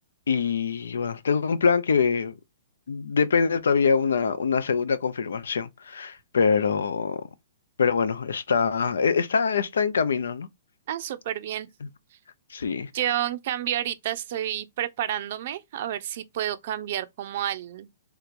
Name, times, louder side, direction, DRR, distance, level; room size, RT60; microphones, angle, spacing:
voice 1, 0.3-2.4 2.9-7.2 7.8-10.5 12.5-12.9, left 5 dB, 85° left, 0.6 m, -24 dB
voice 2, 10.9-11.7 12.9-17.9, right 11 dB, 55° right, 0.5 m, -30 dB
3.5 x 2.9 x 2.5 m
hypercardioid pair, 150°, 0 cm